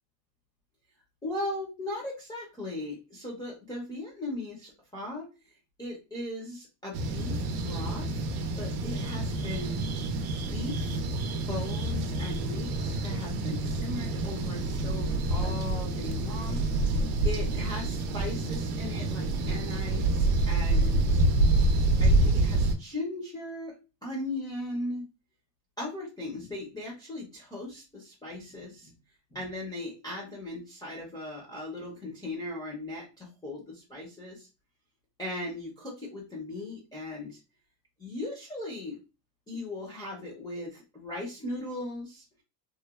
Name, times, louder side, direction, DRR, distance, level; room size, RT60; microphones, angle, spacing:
voice 1, 1.2-8.3 8.6-9.8 10.5-11.0 11.5-21.2 22.0-23.7 24.0-25.0 25.8-28.9 29.3-34.5 35.2-37.4 38.0-39.0 39.5-42.3, left 2 dB, 10° left, -4 dB, 0.3 m, -38 dB
sound 1, 6.9-22.8, right 2 dB, 70° right, 0.6 m, -27 dB
2.9 x 2.0 x 2.3 m, 0.29 s
cardioid pair, 155°, 46 cm